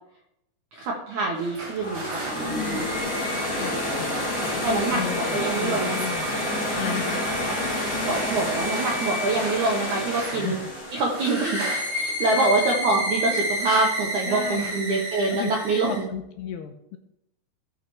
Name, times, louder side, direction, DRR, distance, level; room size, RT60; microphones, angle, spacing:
voice 1, 0.7-2.9 4.6-6.0 7.4-7.7 8.0-10.6 10.9-11.6 11.9-16.1, right 3 dB, 75° right, -1 dB, 1.8 m, -25 dB
sound 1, 1.1-3.3 4.0-5.1 5.3-6.2 6.7-7.1 7.8-10.6 10.9-13.0 13.7-14.0 14.3-15.4, right 2 dB, 45° right, 1.8 m, -40 dB
sound 2, 1.8-12.8, left 1 dB, 20° left, 2.9 m, -29 dB
voice 2, 2.4-2.8 3.5-4.1 4.4-7.2 10.3-10.6 12.4-12.5 14.3-14.8 15.3-15.6 15.9-17.0, left 10 dB, 80° left, 5 dB, 2.5 m, -34 dB
sound 3, 11.2-16.0, equal, 15° right, 2.2 m, -29 dB
16.0 x 6.0 x 3.1 m, 0.79 s
omnidirectional pair, 5.1 m